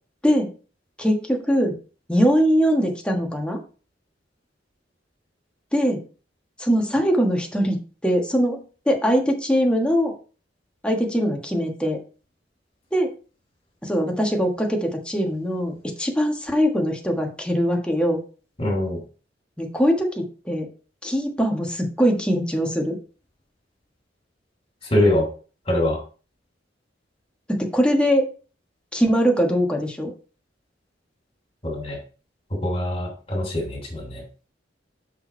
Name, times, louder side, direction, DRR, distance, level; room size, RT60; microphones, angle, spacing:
voice 1, 1.0-1.7 2.1-3.6 5.7-6.0 6.6-7.8 8.0-10.1 10.8-12.0 12.9-13.1 13.9-18.2 19.6-20.7 21.0-23.0 27.5-28.3 28.9-30.1, equal, 5° left, 1 dB, 1.5 m, -21 dB
voice 2, 18.6-19.0 24.9-25.2 25.7-26.0 31.6-32.0 32.6-34.2, left 1 dB, 35° left, -2 dB, 3.2 m, -23 dB
6.2 x 5.6 x 4.4 m, 0.36 s
head